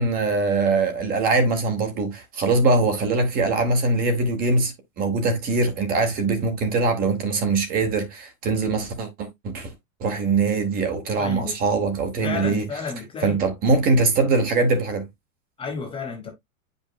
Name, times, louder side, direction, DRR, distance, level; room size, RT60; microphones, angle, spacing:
voice 1, 0.0-9.3 9.5-9.7 10.0-12.7 13.2-15.1, right 3 dB, 20° right, 1.0 m, -22 dB
voice 2, 11.2-11.6 12.2-13.4 15.6-16.3, left 5 dB, 15° left, 0.9 m, -32 dB
8.6 x 5.3 x 2.2 m
supercardioid pair, 160°, 42 cm